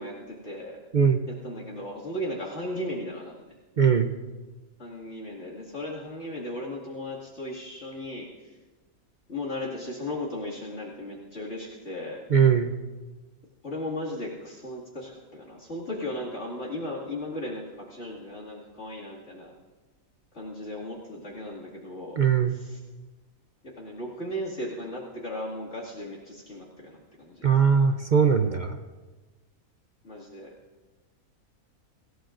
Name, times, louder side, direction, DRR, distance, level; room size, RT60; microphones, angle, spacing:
voice 1, 0.0-0.8 1.3-3.5 4.8-8.5 9.3-12.2 13.6-19.5 20.3-22.2 22.5-22.8 23.6-27.5 30.0-30.5, left 1 dB, 50° left, -5 dB, 2.6 m, -36 dB
voice 2, 3.8-4.1 12.3-12.7 22.2-22.6 27.4-28.8, right 7 dB, 45° right, 6 dB, 0.6 m, -20 dB
25.0 x 16.0 x 2.6 m, 1.2 s
omnidirectional pair, 1.5 m